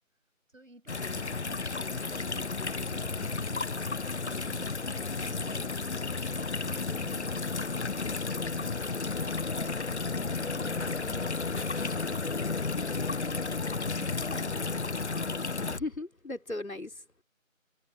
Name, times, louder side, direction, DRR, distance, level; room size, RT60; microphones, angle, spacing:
voice 1, 0.5-5.8 6.3-14.8, right 1 dB, 70° right, 7.3 m, -51 dB
sound 1, 0.9-15.8, left 4 dB, 55° left, 0.5 m, -32 dB
voice 2, 15.7-17.2, left 2 dB, 80° left, 4.0 m, -37 dB
figure-of-eight pair, 170°, 41 cm